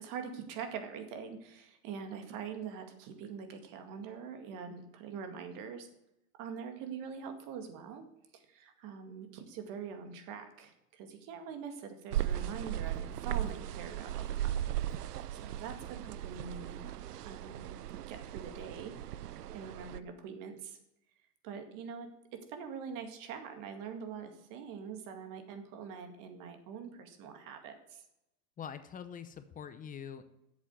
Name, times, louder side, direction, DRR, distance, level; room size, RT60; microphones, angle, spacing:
voice 1, 0.0-5.9 6.4-8.0 8.3-16.8 17.3-17.8 18.1-18.9 19.5-20.8 21.4-28.0, right 6 dB, 45° right, 6 dB, 2.1 m, -44 dB
sound 1, 12.1-20.0, right 12 dB, 85° right, 0.6 m, -37 dB
voice 2, 28.6-30.2, left 8 dB, 20° left, 11 dB, 0.7 m, -44 dB
8.2 x 7.5 x 7.7 m, 0.85 s
hypercardioid pair, 110°, 46 cm